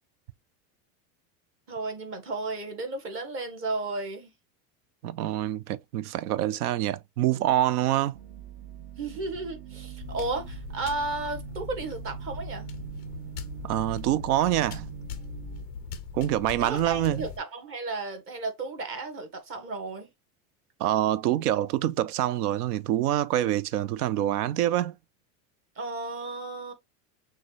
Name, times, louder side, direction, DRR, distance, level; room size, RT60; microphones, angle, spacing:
voice 1, 1.7-4.3 9.0-12.6 16.6-20.1 25.8-26.7, right 3 dB, 30° right, 1.3 m, -33 dB
voice 2, 5.0-8.2 13.6-14.9 16.1-17.2 20.8-24.9, right 13 dB, 80° right, 0.6 m, -26 dB
sound 1, 8.1-15.7, right 10 dB, 50° right, 0.7 m, -43 dB
sound 2, 10.0-17.4, left 6 dB, 20° left, 0.3 m, -40 dB
6.3 x 2.4 x 3.1 m
supercardioid pair, 155°, 45 cm